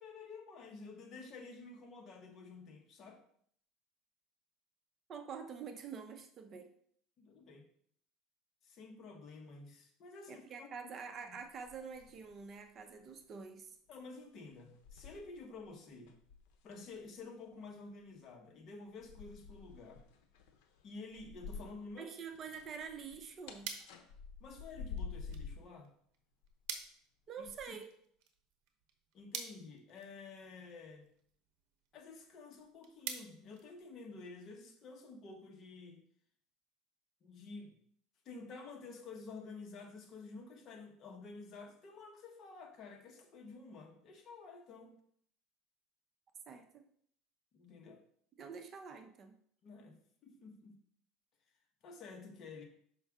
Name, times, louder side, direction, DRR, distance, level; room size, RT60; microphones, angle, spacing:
voice 1, 0.0-3.2 7.2-7.7 8.6-10.9 11.3-11.4 13.9-16.1 16.6-20.0 20.8-22.1 24.4-25.9 27.4-27.8 29.1-31.1 31.9-36.0 37.2-37.8 38.2-45.0 47.5-48.0 49.6-50.8 51.8-52.6, left 3 dB, 40° left, 3 dB, 1.2 m, -51 dB
voice 2, 5.1-6.7 10.3-13.8 22.0-23.7 27.3-27.9 46.5-46.8 48.4-49.3, right 6 dB, 35° right, 6 dB, 0.7 m, -47 dB
sound 1, 11.4-12.5 12.8-13.1 13.9-14.0 14.6-15.7 16.0-17.0 19.0-22.0 22.3-25.7 26.4-26.9 27.4-27.6, left 5 dB, 80° left, 0.8 m, -49 dB
sound 2, 23.6-34.4, right 7 dB, 60° right, 0.9 m, -50 dB
6.2 x 5.4 x 3.6 m, 0.64 s
cardioid pair, 135°, 0 cm